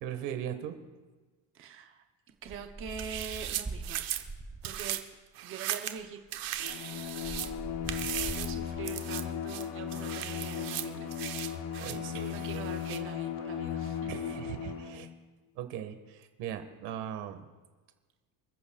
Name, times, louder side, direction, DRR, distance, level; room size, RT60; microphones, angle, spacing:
voice 1, 0.0-0.8 11.8-12.7 14.1-15.1 15.6-17.5, right 10 dB, 85° right, 7 dB, 1.7 m, -39 dB
voice 2, 1.5-2.0 2.4-4.0 4.6-5.0 5.4-6.2 8.3-11.1 12.3-14.1, right 7 dB, 30° right, 4 dB, 0.8 m, -43 dB
sound 1, 2.4-5.0 6.0-6.1 6.3-9.0, right 3 dB, 10° right, 0.4 m, -43 dB
sound 2, 2.9-4.2 4.6-5.0 5.4-6.0 6.3-7.5 7.9-8.5 8.8-9.2 9.5-13.0, right 12 dB, 55° right, 1.0 m, -37 dB
Bowed string instrument, 6.6-15.1, left 9 dB, 75° left, 1.1 m, -36 dB
28.0 x 15.0 x 2.4 m, 1.3 s
cardioid pair, 175°, 40 cm